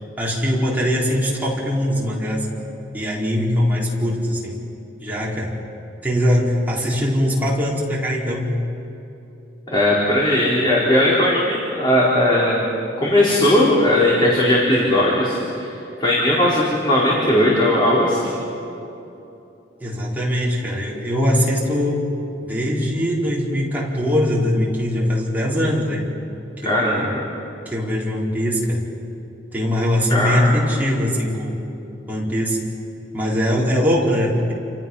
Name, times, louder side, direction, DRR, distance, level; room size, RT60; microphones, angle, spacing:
voice 1, 0.2-2.5 2.9-4.6 5.0-5.5 6.0-8.6 19.8-22.1 22.4-26.1 26.6-27.2 27.6-28.9 29.5-31.6 32.1-32.6 33.1-34.5, equal, 10° right, -6 dB, 4.9 m, -21 dB
voice 2, 9.7-12.6 13.0-15.7 16.0-18.4 26.7-27.2 30.1-30.6, left 1 dB, 25° left, -6 dB, 4.2 m, -18 dB
29.0 x 28.5 x 5.7 m, 2.8 s
head